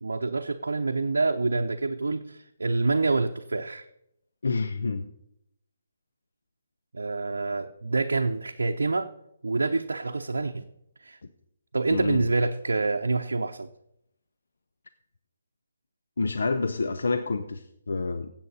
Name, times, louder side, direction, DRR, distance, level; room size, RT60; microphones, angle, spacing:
voice 1, 0.0-3.9 6.9-9.1 9.4-10.7 11.0-11.2 11.7-13.7, right 3 dB, 80° right, 3 dB, 0.6 m, -27 dB
voice 2, 4.4-5.1 11.9-12.2 16.2-18.3, left 3 dB, 75° left, 11 dB, 0.7 m, -28 dB
15.5 x 7.7 x 4.2 m, 0.79 s
figure-of-eight pair, 145°, 0 cm